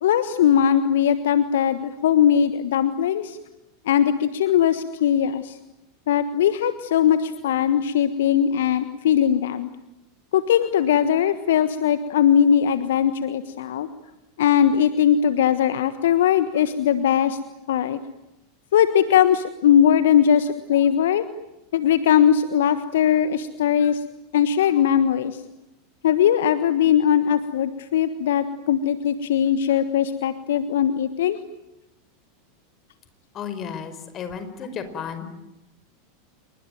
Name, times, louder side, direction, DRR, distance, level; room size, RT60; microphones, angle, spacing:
voice 1, 0.0-3.4 3.8-5.6 6.1-9.7 10.3-13.9 14.4-17.4 17.7-18.0 18.7-21.2 21.7-24.0 24.3-25.4 26.0-31.4, left 9 dB, 70° left, 12 dB, 1.4 m, -20 dB
voice 2, 33.3-35.2, left 7 dB, 35° left, 10 dB, 5.3 m, -33 dB
28.5 x 23.0 x 9.2 m, 0.94 s
figure-of-eight pair, 90°, 0 cm